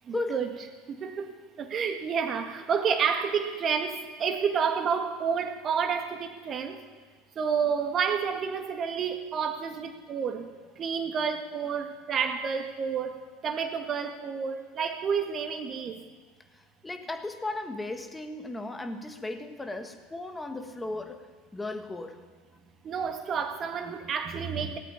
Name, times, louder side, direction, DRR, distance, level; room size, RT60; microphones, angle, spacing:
voice 1, 0.1-0.5 0.9-6.8 7.4-10.5 10.8-13.2 13.4-16.0 22.8-24.8, right 6 dB, 40° right, 6 dB, 1.9 m, -30 dB
voice 2, 16.8-21.3 21.5-22.2, left 2 dB, 15° left, 6 dB, 1.8 m, -35 dB
18.0 x 8.3 x 9.4 m, 1.4 s
hypercardioid pair, 75°, 0 cm